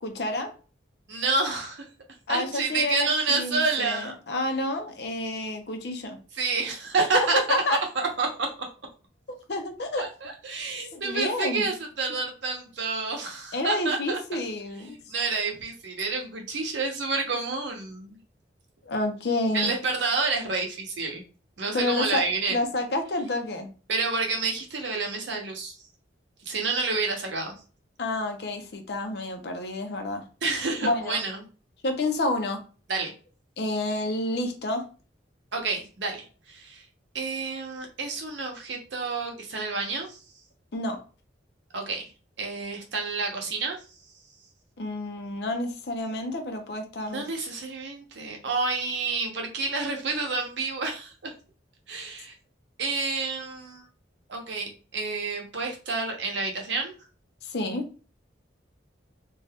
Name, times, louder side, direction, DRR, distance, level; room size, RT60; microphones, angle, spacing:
voice 1, 0.0-0.5 2.3-6.2 7.1-7.8 9.3-10.1 10.9-11.7 13.5-15.0 18.9-19.7 21.7-22.2 22.5-23.7 28.0-30.2 30.8-31.2 31.8-32.6 33.6-34.8 40.7-41.0 44.8-47.3 57.4-57.8, left 2 dB, 60° left, 5 dB, 0.6 m, -29 dB
voice 2, 1.1-1.8 2.3-4.2 6.3-7.6 8.2-8.5 10.0-14.2 15.1-18.2 19.5-21.2 21.6-22.6 23.9-25.7 26.5-27.5 30.4-31.4 32.9-33.1 35.5-36.8 37.1-40.2 41.7-42.1 42.4-43.8 47.0-51.3 51.9-52.3 52.8-53.9 54.3-56.9, right 3 dB, 70° right, 2 dB, 0.8 m, -29 dB
2.6 x 2.3 x 3.4 m, 0.37 s
head